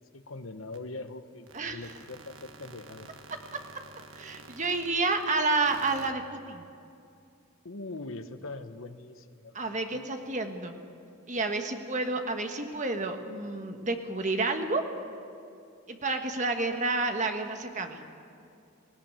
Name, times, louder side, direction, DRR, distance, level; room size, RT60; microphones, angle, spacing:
voice 1, 0.0-3.1 7.6-9.6 9.9-10.1, left 2 dB, 70° left, 9 dB, 1.0 m, -42 dB
sound 1, 0.7-0.8 1.1-1.2 1.4-6.1, right 3 dB, 65° right, 1.4 m, -50 dB
voice 2, 4.1-6.6 9.5-10.7 11.3-14.8 15.9-18.0, right 3 dB, 35° right, 5 dB, 1.4 m, -30 dB
18.5 x 17.0 x 8.9 m, 2.6 s
head